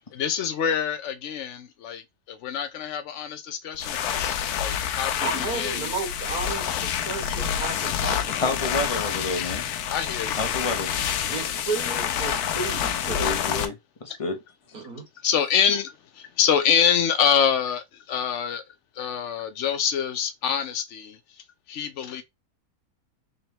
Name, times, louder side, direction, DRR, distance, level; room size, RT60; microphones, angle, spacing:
voice 1, 0.1-5.9 7.3-7.4 9.9-10.4 15.2-18.6 19.0-21.2 21.7-22.2, left 8 dB, 60° left, 0.8 m, -26 dB
sound 1, 3.7-13.7, left 9 dB, 90° left, 1.1 m, -28 dB
voice 2, 5.2-8.9 11.3-13.4 14.7-15.1, right 4 dB, 75° right, 2.1 m, -33 dB
voice 3, 8.4-9.6 10.4-10.9 13.2-14.4, left 2 dB, 40° left, 0.5 m, -29 dB
3.9 x 3.2 x 2.9 m
omnidirectional pair, 1.6 m